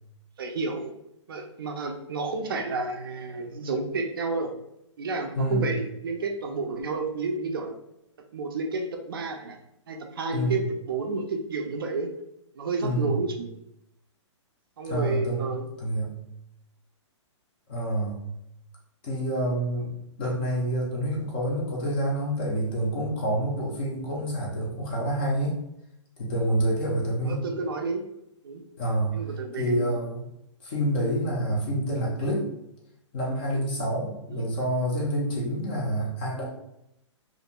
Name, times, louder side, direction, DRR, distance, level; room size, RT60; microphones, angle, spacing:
voice 1, 0.4-0.9 1.3-4.5 5.0-7.8 8.3-9.6 9.9-12.1 12.6-13.5 14.8-15.7 27.2-28.0 28.4-28.6 29.1-29.9 34.3-34.4, right 3 dB, 45° right, 3 dB, 0.4 m, -30 dB
voice 2, 5.4-5.7 10.3-10.6 12.8-13.2 14.9-15.5 15.8-16.1 17.7-18.2 19.0-19.9 20.2-25.5 26.2-27.4 28.8-29.2 29.6-30.2 30.6-32.5 33.1-36.4, right 1 dB, 20° left, -3 dB, 0.4 m, -27 dB
2.5 x 2.2 x 2.8 m, 0.82 s
hypercardioid pair, 170°, 16 cm